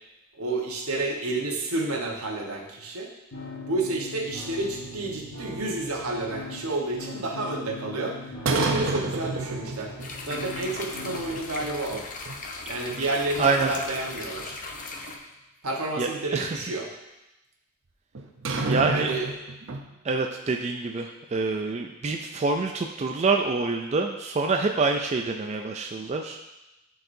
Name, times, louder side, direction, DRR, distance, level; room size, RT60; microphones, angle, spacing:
voice 1, 0.4-3.1 3.7-8.2 8.5-9.9 10.3-12.0 12.7-14.6 15.6-16.9 18.8-19.3, right 2 dB, 80° right, 0 dB, 1.2 m, -30 dB
sound 1, 3.3-11.3, left 2 dB, 90° left, 1.3 m, -40 dB
sound 2, 4.6-5.9 8.5-10.1 10.4-10.5 11.0-12.0 12.3-12.4 12.9-13.0 13.4-14.7 16.3-16.4 18.1-19.9, right 3 dB, 60° right, 0.7 m, -30 dB
sound 3, 10.0-15.2, left 3 dB, 40° left, 0.7 m, -38 dB
voice 2, 13.4-13.7 16.0-16.5 18.7-19.1 20.0-26.4, right 4 dB, 30° right, 3 dB, 0.4 m, -26 dB
11.0 x 4.7 x 2.7 m, 0.96 s
head